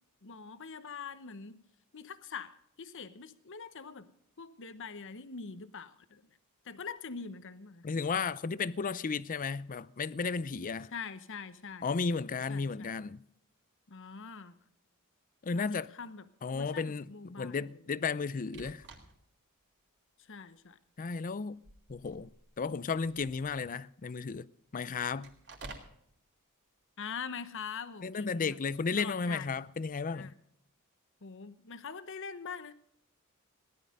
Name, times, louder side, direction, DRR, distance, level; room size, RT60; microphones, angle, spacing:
voice 1, 0.2-1.6 1.9-4.1 4.4-6.2 6.6-7.9 10.9-11.9 12.5-12.9 13.9-14.5 15.5-17.7 20.2-20.8 27.0-28.6 29.0-29.5 30.1-30.3 31.2-32.7, left 5 dB, 60° left, 1.0 m, -44 dB
voice 2, 7.8-10.9 11.8-13.2 15.4-15.9 16.4-18.8 21.0-21.6 21.9-22.3 22.6-24.5 24.7-25.3 28.0-30.3, left 5 dB, 40° left, 0.5 m, -34 dB
sound 1, 18.5-19.4 19.9-20.0 20.9-21.2 21.5-23.7 25.2-26.0 29.6-29.9, right 3 dB, 55° right, 2.8 m, -51 dB
17.5 x 11.5 x 5.3 m
head